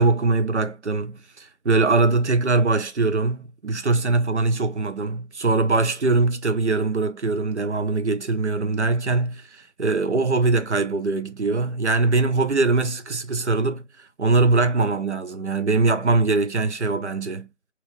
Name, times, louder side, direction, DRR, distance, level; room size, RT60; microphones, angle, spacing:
voice 1, 0.0-13.8 14.2-17.5, right 3 dB, 65° right, 0.8 m, -22 dB
3.1 x 2.9 x 3.3 m
figure-of-eight pair, 160°, 37 cm